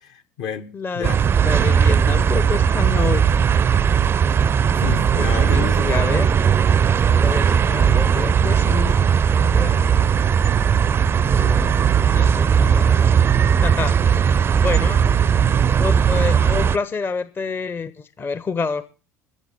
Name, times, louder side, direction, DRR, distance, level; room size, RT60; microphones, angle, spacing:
voice 1, 0.0-1.2 4.7-5.9, left 8 dB, 55° left, 1.2 m, -30 dB
voice 2, 0.7-1.1 1.4-3.3 5.2-6.4 7.0-9.0 9.3-9.9 11.2-11.8 12.1-13.0 13.6-14.3 14.6-15.3 15.8-18.9, left 5 dB, 25° left, 0.8 m, -28 dB
sound 1, 1.0-16.8, right 7 dB, 25° right, 0.5 m, -17 dB
14.0 x 7.0 x 8.2 m
figure-of-eight pair, 65°, 9 cm